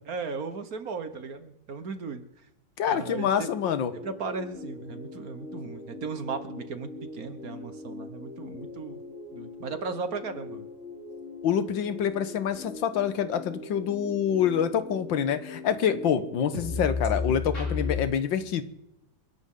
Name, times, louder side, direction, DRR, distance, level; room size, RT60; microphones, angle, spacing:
voice 1, 0.1-2.3 2.9-3.5 4.0-9.0 9.3-10.7, right 4 dB, 55° right, 9 dB, 1.6 m, -36 dB
voice 2, 2.8-3.9 11.4-18.6, left 8 dB, 85° left, 11 dB, 1.8 m, -26 dB
sound 1, 3.3-18.0, left 4 dB, 40° left, 3.8 m, -38 dB
28.5 x 11.0 x 3.8 m, 0.82 s
omnidirectional pair, 2.0 m